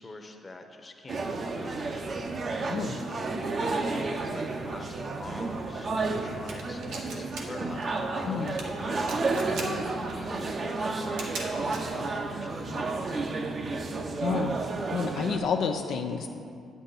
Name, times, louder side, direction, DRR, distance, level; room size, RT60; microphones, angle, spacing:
voice 1, 0.0-2.3 3.1-9.9 10.2-12.9, left 2 dB, 25° left, 4 dB, 0.9 m, -45 dB
sound 1, 1.1-15.4, right 3 dB, 45° right, 0.7 m, -31 dB
voice 2, 2.7-3.0 8.2-8.6 14.2-14.5 14.9-16.3, left 5 dB, 75° left, 3 dB, 0.5 m, -29 dB
sound 2, 6.5-7.4 7.7-8.0 8.4-8.7 9.0-9.7 10.1-10.2 11.0-11.9, right 4 dB, 90° right, 1.2 m, -38 dB
8.7 x 8.1 x 4.1 m, 2.4 s
cardioid pair, 90°, 0 cm